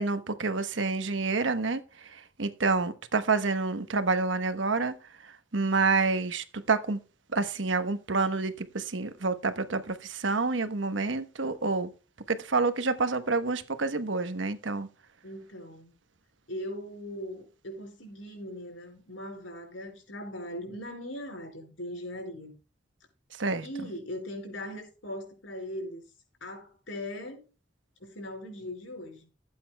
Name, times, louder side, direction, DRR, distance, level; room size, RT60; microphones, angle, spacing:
voice 1, 0.0-1.8 2.4-4.9 5.5-7.0 7.3-11.9 12.3-14.9 23.4-23.6, right 4 dB, 80° right, 1.1 m, -28 dB
voice 2, 15.2-15.9 16.5-22.5 23.6-26.0 26.4-27.4 28.0-29.3, left 1 dB, 85° left, 5.0 m, -39 dB
17.0 x 8.5 x 2.2 m
head